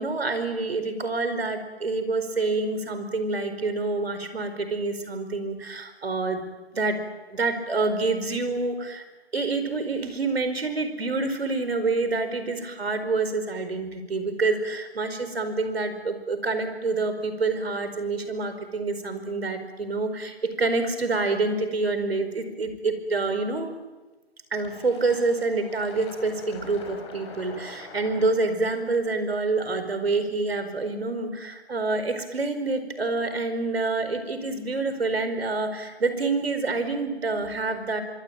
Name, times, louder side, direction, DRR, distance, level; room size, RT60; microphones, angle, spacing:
voice 1, 0.0-6.4 6.7-7.0 7.3-9.0 9.3-23.7 24.5-38.0, right 3 dB, 65° right, 9 dB, 4.9 m, -27 dB
Fill (with liquid), 24.6-30.0, left 4 dB, 25° left, 4.9 m, -45 dB
25.5 x 23.5 x 9.0 m, 1.2 s
figure-of-eight pair, 155°, 33 cm